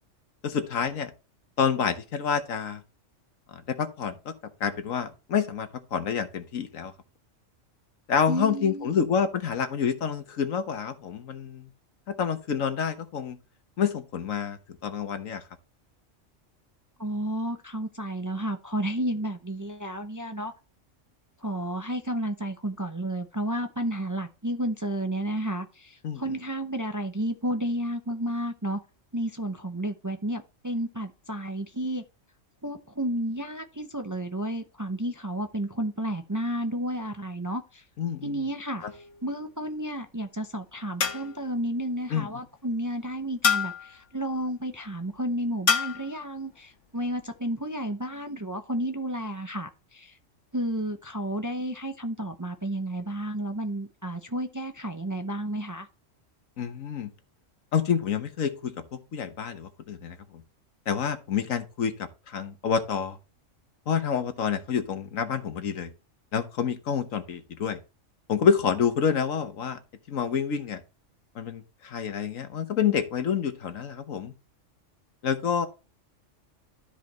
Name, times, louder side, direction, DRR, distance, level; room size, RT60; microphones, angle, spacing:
voice 1, 0.4-1.1 1.6-2.8 3.5-4.3 4.6-6.9 8.1-11.7 12.1-13.4 13.8-15.4 26.0-26.2 38.0-38.4 38.8-38.9 42.1-42.3 56.6-57.1 57.7-60.2 60.9-63.2 63.9-65.9 66.3-67.8 68.3-69.8 70.1-70.8 71.3-74.3 75.2-75.7, left 7 dB, 85° left, 1.5 m, -28 dB
voice 2, 8.3-9.0 17.0-20.5 21.4-28.8 29.1-32.0 32.6-37.8 38.2-50.2 50.5-55.9, right 1 dB, 20° right, 0.5 m, -32 dB
sound 1, 38.8-39.4 41.0-41.6 43.4-43.9 45.7-46.1, left 6 dB, 65° left, 1.5 m, -27 dB
13.0 x 5.0 x 3.1 m
omnidirectional pair, 1.3 m